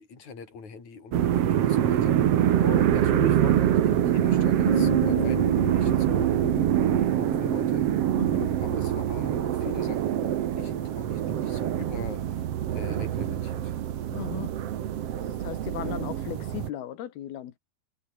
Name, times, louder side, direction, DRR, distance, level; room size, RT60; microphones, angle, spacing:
voice 1, 0.0-2.2 2.6-6.6 7.1-7.8 8.6-10.3 10.5-12.2 12.7-13.7, left 5 dB, 50° left, 6.8 m, -41 dB
sound 1, 1.1-16.7, right 11 dB, 60° right, 1.6 m, -25 dB
Bass guitar, 4.7-10.9, right 3 dB, 30° right, 5.0 m, -33 dB
voice 2, 8.1-8.5 14.1-14.5 15.1-17.6, left 11 dB, 80° left, 3.7 m, -37 dB
omnidirectional pair, 4.4 m